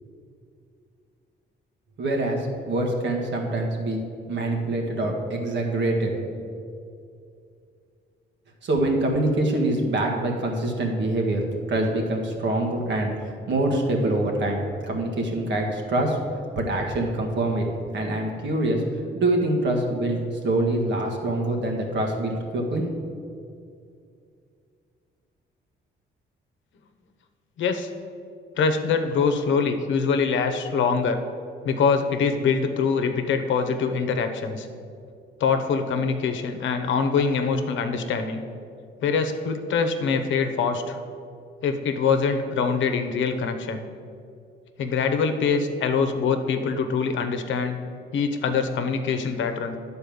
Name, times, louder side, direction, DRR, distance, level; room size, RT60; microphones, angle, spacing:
voice 1, 2.0-4.0 4.3-6.3 8.6-16.2 16.5-17.6 17.9-18.8 19.1-20.2 20.4-22.8, right 1 dB, 65° right, 1 dB, 1.6 m, -25 dB
voice 2, 27.6-27.9 28.6-31.2 31.6-34.7 35.4-38.4 39.0-41.0 41.6-43.8 44.8-47.8 48.1-49.8, left 5 dB, 75° left, 7 dB, 0.9 m, -24 dB
10.0 x 4.3 x 7.0 m, 2.4 s
cardioid pair, 90°, 20 cm